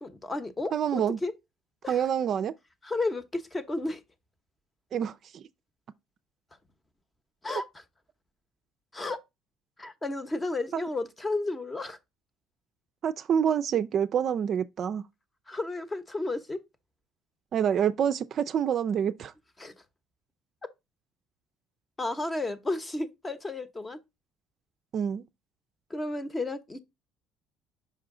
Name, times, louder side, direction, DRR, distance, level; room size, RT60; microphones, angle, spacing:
voice 1, 0.0-1.3 1.8-2.0 2.8-4.0 7.4-7.8 8.9-9.2 9.8-12.0 15.5-16.6 19.6-19.7 22.0-24.0 25.9-26.8, left 2 dB, 15° left, 0.8 m, -32 dB
voice 2, 0.7-1.2 1.9-2.5 4.9-5.1 10.7-10.8 13.0-15.0 17.5-19.3 24.9-25.2, right 8 dB, 50° right, 0.4 m, -27 dB
5.5 x 4.8 x 3.7 m
cardioid pair, 110°, 0 cm